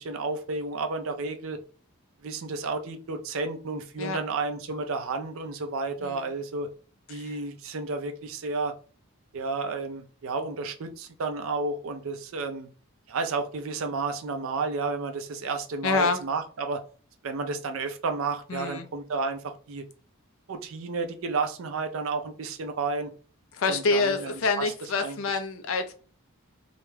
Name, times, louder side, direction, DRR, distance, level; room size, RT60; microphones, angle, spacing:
voice 1, 0.0-1.6 2.2-6.7 7.1-8.7 9.3-12.7 13.1-16.8 17.2-19.8 20.5-23.1 23.7-25.2, right 3 dB, 65° right, 0.4 m, -32 dB
voice 2, 6.0-6.3 7.1-7.3 15.8-16.2 18.5-18.9 23.5-25.9, left 4 dB, 65° left, 0.5 m, -27 dB
2.3 x 2.1 x 3.1 m
head